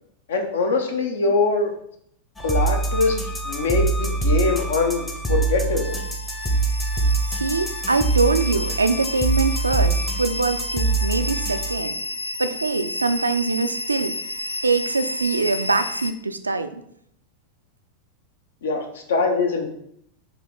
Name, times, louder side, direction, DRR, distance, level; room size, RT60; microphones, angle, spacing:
voice 1, 0.3-1.7 2.4-3.2 3.4-6.0 18.6-19.7, left 3 dB, 65° left, 4 dB, 0.7 m, -23 dB
sound 1, 2.4-11.8, right 3 dB, 10° left, 0.8 m, -24 dB
sound 2, 5.8-16.1, left 2 dB, 85° left, 0.3 m, -31 dB
voice 2, 7.3-11.9 12.4-14.2 14.6-16.8, right 3 dB, 80° right, 9 dB, 0.3 m, -23 dB
4.4 x 2.9 x 3.8 m, 0.71 s
figure-of-eight pair, 90°, 0 cm